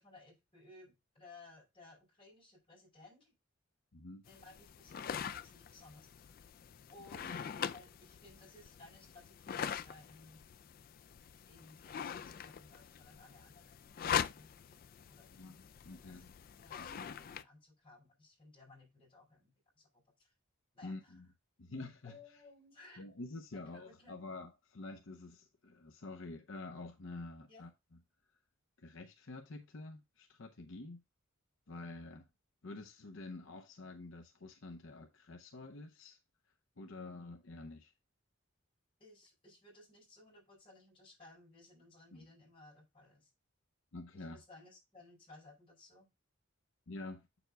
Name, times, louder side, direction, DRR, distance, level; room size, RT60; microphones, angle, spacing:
voice 1, 0.0-3.3 4.2-6.3 6.9-10.4 11.5-14.5 15.1-15.6 15.9-16.2 16.6-20.3 20.7-21.1 22.0-23.0 23.5-24.2 27.5-27.6 39.0-43.3 44.1-46.1, left 2 dB, 25° left, 4.8 m, -59 dB
voice 2, 3.9-4.2 7.1-7.4 15.3-16.3 16.8-17.1 20.8-21.3 21.6-22.2 23.0-27.7 28.8-31.0 31.7-32.3 32.6-36.2 36.8-37.9 42.1-42.2 43.9-44.4 46.9-47.3, left 2 dB, 60° left, 0.7 m, -48 dB
sound 1, 4.3-17.4, left 8 dB, 45° left, 0.3 m, -43 dB
7.9 x 7.0 x 2.2 m
head